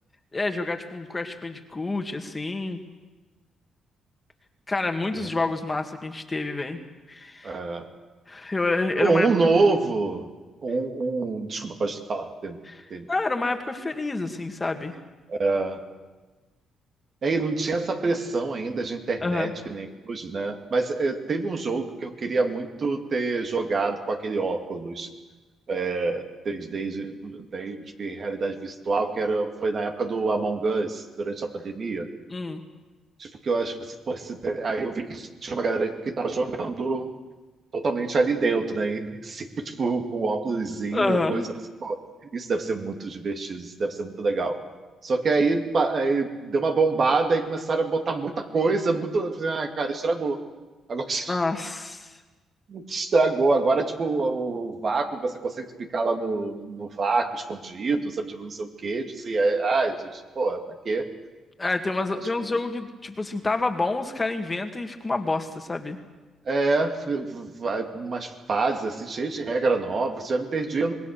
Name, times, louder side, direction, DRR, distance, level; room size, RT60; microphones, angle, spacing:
voice 1, 0.3-2.8 4.7-6.8 7.1-7.6 8.3-9.3 12.6-12.8 13.1-14.9 19.2-19.5 32.3-32.6 40.9-41.5 51.3-52.2 61.6-66.0, left 3 dB, 20° left, 5 dB, 2.1 m, -28 dB
voice 2, 7.4-7.9 9.0-10.3 10.6-12.6 12.9-13.1 15.3-15.8 17.2-25.1 25.7-32.1 33.2-37.1 37.7-41.4 41.8-42.0 42.3-44.6 45.0-50.4 50.9-51.4 52.7-55.7 55.9-61.1 66.5-70.9, right 3 dB, 45° right, 4 dB, 2.3 m, -26 dB
26.0 x 20.0 x 6.6 m, 1.2 s
cardioid pair, 90°, 0 cm